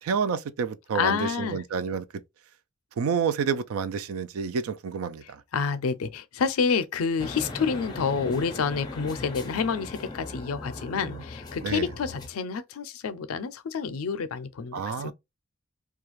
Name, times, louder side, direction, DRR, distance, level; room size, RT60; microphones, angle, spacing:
voice 1, 0.0-2.1 3.0-5.4 10.9-11.2 11.6-11.9 14.7-15.1, right 6 dB, 85° right, 0.4 m, -29 dB
voice 2, 0.9-1.6 5.5-15.1, left 5 dB, 90° left, 0.4 m, -28 dB
sound 1, 7.2-12.3, left 2 dB, 20° left, 0.4 m, -39 dB
2.4 x 2.2 x 3.0 m
head